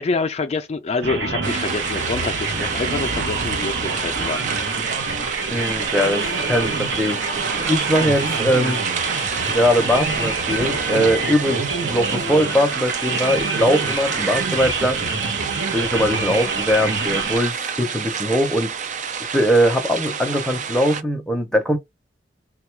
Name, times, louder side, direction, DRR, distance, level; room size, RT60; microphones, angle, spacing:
voice 1, 0.0-4.4, left 4 dB, 35° left, 0.4 m, -26 dB
sound 1, 1.0-17.4, right 3 dB, 85° right, 0.9 m, -26 dB
sound 2, 1.4-21.0, right 6 dB, 45° right, 0.5 m, -28 dB
voice 2, 5.5-7.4 7.7-8.8 9.4-15.0 15.7-18.7 19.3-21.8, equal, 5° left, 0.7 m, -21 dB
3.7 x 2.3 x 4.4 m
head